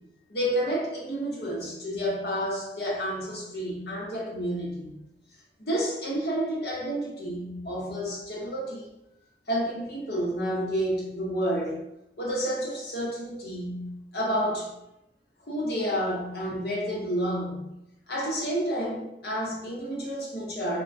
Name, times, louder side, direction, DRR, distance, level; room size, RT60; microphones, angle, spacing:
voice 1, 0.3-5.0 5.6-8.8 9.5-11.8 12.2-14.7 15.5-17.6 18.1-20.8, equal, 65° left, -3 dB, 0.9 m, -30 dB
3.7 x 2.2 x 2.6 m, 0.86 s
head